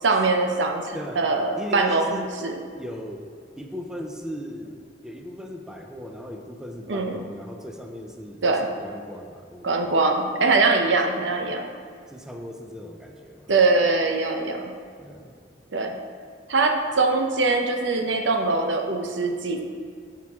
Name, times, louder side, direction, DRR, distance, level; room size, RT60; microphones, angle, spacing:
voice 1, 0.0-2.6 6.9-7.2 8.4-8.7 9.6-11.7 13.5-14.6 15.7-15.9 16.5-19.6, right 3 dB, 85° right, 4 dB, 0.7 m, -22 dB
voice 2, 0.9-1.2 1.6-2.3 2.7-3.2 3.6-9.9 12.1-13.5 15.0-15.4, equal, 5° right, 2 dB, 0.5 m, -38 dB
7.3 x 5.9 x 3.5 m, 2.2 s
head